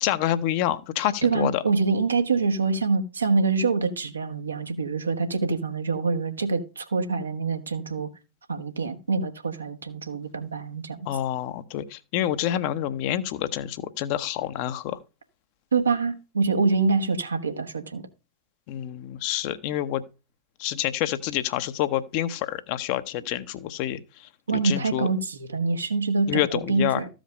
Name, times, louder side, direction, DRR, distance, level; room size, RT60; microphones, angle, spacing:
voice 1, 0.0-1.6 11.1-15.0 18.7-20.0 20.6-25.1 26.3-27.0, left 12 dB, 45° left, 0.9 m, -28 dB
voice 2, 1.2-8.1 8.5-11.0 15.7-18.1 24.5-26.4 26.7-27.1, right 4 dB, 75° right, 1.2 m, -25 dB
14.0 x 5.1 x 5.2 m
figure-of-eight pair, 90°, 0 cm